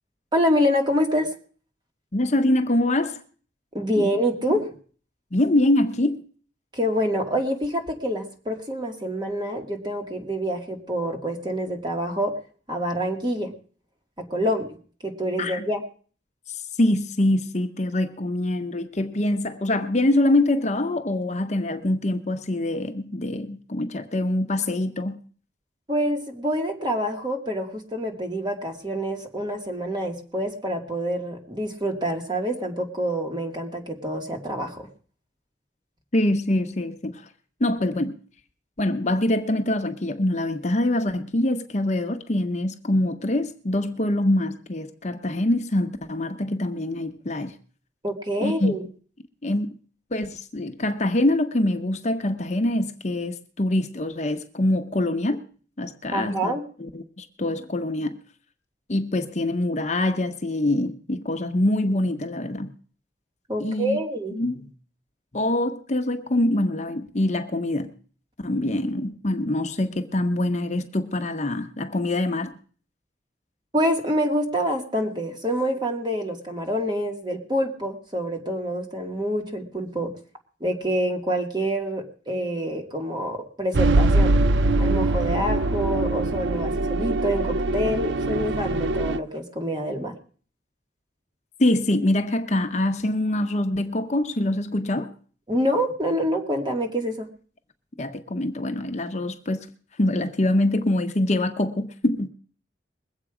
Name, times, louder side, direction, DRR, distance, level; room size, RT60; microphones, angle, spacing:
voice 1, 0.3-1.3 3.7-4.7 6.7-12.3 12.7-13.5 14.2-15.8 25.9-34.9 48.0-48.8 56.1-56.6 63.5-64.4 73.7-80.1 80.6-84.4 84.8-90.1 95.5-97.3, equal, 25° right, 2.1 m, -26 dB
voice 2, 2.1-3.2 4.0-4.1 5.3-6.2 15.4-15.6 16.5-25.2 36.1-37.2 37.6-38.2 38.8-47.5 48.4-48.8 49.4-49.7 50.1-55.4 55.8-58.2 58.9-62.7 63.6-64.0 64.3-64.7 65.3-67.9 68.4-72.5 91.6-95.1 98.0-99.7 100.0-102.3, left 1 dB, 40° left, 0.9 m, -24 dB
sound 1, 83.7-89.2, right 2 dB, 85° right, 0.5 m, -22 dB
21.5 x 8.1 x 4.9 m
head